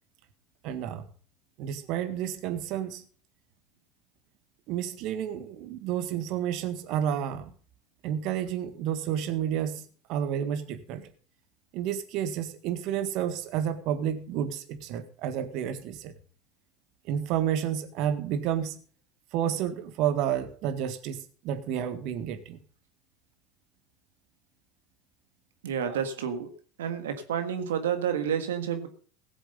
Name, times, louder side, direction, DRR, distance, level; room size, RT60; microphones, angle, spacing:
voice 1, 0.6-1.0 1.6-3.0 4.7-7.5 8.0-9.8 10.1-11.1 11.7-16.1 17.1-18.8 19.3-22.6 25.8-26.0, right 9 dB, 60° right, 10 dB, 1.6 m, -30 dB
voice 2, 25.6-26.5 26.8-28.9, right 8 dB, 80° right, 8 dB, 1.6 m, -29 dB
17.0 x 7.2 x 5.4 m, 0.42 s
hypercardioid pair, 85°, 0 cm